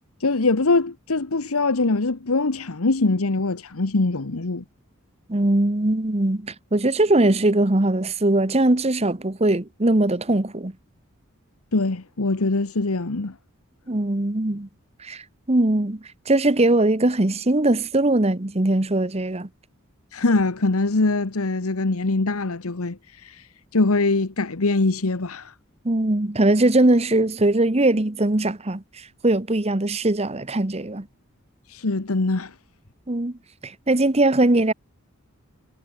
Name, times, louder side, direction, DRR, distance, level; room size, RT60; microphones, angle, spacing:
voice 1, 0.2-4.6 11.7-13.3 20.1-25.5 31.7-32.5, left 3 dB, 90° left, 1.2 m, -23 dB
voice 2, 5.3-10.7 13.9-14.7 15.0-19.5 25.8-31.1 33.1-34.7, right 2 dB, 30° right, 1.1 m, -21 dB
head